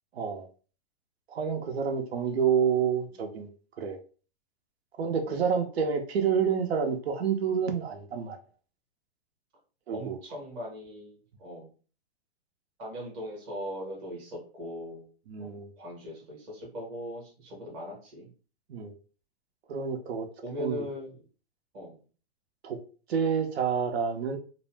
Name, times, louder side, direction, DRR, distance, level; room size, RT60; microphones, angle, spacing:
voice 1, 0.1-0.5 1.3-3.5 3.8-4.0 5.0-8.4 9.9-10.2 15.3-15.7 18.7-18.9 19.7-20.3 20.6-20.9 22.6-22.8 23.1-24.4, right 7 dB, 80° right, 5 dB, 0.7 m, -28 dB
voice 2, 9.9-11.7 12.8-15.1 15.4-15.5 15.8-18.3 20.4-21.2 21.7-22.0, equal, 15° right, -4 dB, 0.8 m, -39 dB
2.5 x 2.0 x 3.2 m, 0.38 s
hypercardioid pair, 180°, 31 cm